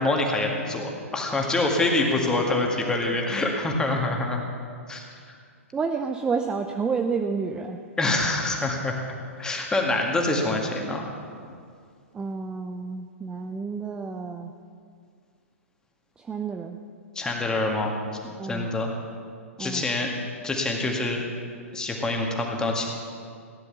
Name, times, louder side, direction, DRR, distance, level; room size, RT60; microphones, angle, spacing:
voice 1, 0.0-4.4 4.9-5.0 8.0-11.1 17.2-17.9 18.2-18.9 19.6-20.1 20.4-21.2 21.7-22.9, left 2 dB, 10° left, 1 dB, 2.1 m, -26 dB
voice 2, 5.7-7.8 12.1-14.5 16.2-16.8 18.4-18.7 19.6-19.9, right 5 dB, 10° right, 5 dB, 0.6 m, -30 dB
16.5 x 10.5 x 7.1 m, 2.2 s
figure-of-eight pair, 110°, 8 cm